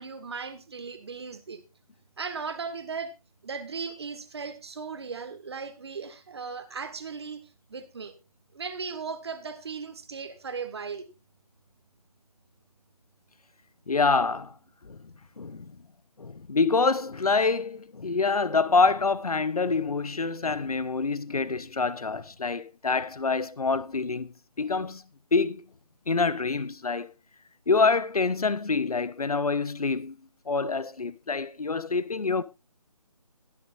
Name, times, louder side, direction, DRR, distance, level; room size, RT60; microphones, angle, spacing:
voice 1, 0.0-1.6 2.2-3.1 3.4-7.4 7.7-8.1 8.5-11.1, right 5 dB, 45° right, 1.7 m, -37 dB
voice 2, 13.9-14.5 14.8-15.7 16.2-25.0 25.3-25.7 26.1-27.1 27.7-30.1 30.5-32.4, left 4 dB, 75° left, 0.9 m, -26 dB
21.5 x 7.2 x 2.6 m
figure-of-eight pair, 160°, 19 cm